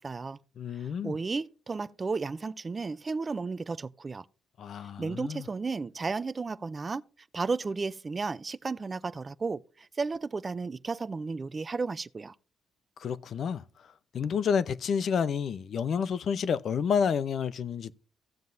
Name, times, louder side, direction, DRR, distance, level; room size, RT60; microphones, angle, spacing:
voice 1, 0.0-0.4 0.7-4.2 5.0-7.0 7.3-12.3, right 4 dB, 30° right, 0.5 m, -33 dB
voice 2, 0.6-1.2 4.6-5.4 13.0-13.6 14.1-17.9, left 7 dB, 60° left, 0.6 m, -29 dB
16.0 x 7.4 x 2.6 m
cardioid pair, 90°, 0 cm